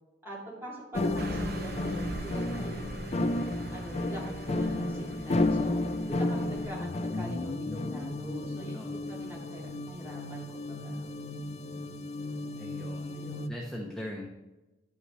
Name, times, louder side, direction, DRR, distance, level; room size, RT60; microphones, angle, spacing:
voice 1, 0.2-3.3 3.7-5.7 6.1-11.2 13.1-13.5, equal, 15° right, -7 dB, 3.0 m, -44 dB
sound 1, 0.9-13.5, left 2 dB, 35° left, 0.4 m, -33 dB
Car passing by / Truck, 1.2-6.7, right 2 dB, 55° right, 0.6 m, -41 dB
voice 2, 8.7-9.4 11.3-11.9 12.5-13.2 13.5-14.3, left 1 dB, 5° left, -2 dB, 0.8 m, -42 dB
11.0 x 5.5 x 3.2 m, 1.1 s
head